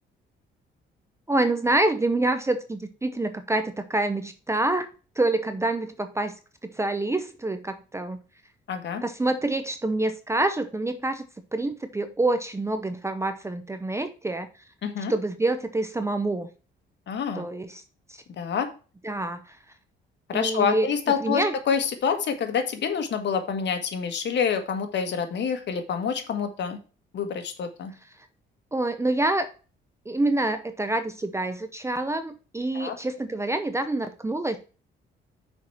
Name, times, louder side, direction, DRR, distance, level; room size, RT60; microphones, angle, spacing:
voice 1, 1.3-4.9 5.2-6.3 6.6-8.2 9.0-11.2 11.5-14.5 15.1-16.5 17.4-17.8 19.0-19.6 20.3-20.9 21.2-21.5 28.7-29.5 30.1-34.6, right 2 dB, 15° right, 9 dB, 0.7 m, -26 dB
voice 2, 8.7-9.0 14.8-15.1 17.1-17.5 18.4-18.7 20.3-26.8 27.1-27.9 32.7-33.0, left 6 dB, 60° left, 6 dB, 1.5 m, -27 dB
6.2 x 4.7 x 5.7 m, 0.35 s
cardioid pair, 90°, 20 cm